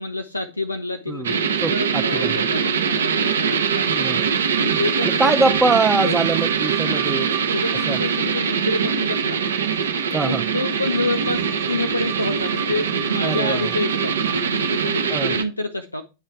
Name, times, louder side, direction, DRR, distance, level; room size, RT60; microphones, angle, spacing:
voice 1, 0.0-3.9 4.5-5.5 6.0-6.2 6.8-9.4 10.2-16.0, left 2 dB, 85° left, 0.5 m, -28 dB
sound 1, 1.2-15.4, right 6 dB, 70° right, 0.7 m, -23 dB
voice 2, 1.6-2.4 4.0-4.3 5.0-7.3 7.9-8.0 10.1-10.4 13.2-13.7 15.1-15.3, right 3 dB, 10° right, 0.5 m, -23 dB
sound 2, 2.3-15.0, right 12 dB, 45° right, 0.9 m, -39 dB
9.3 x 3.2 x 4.6 m
figure-of-eight pair, 90°, 0 cm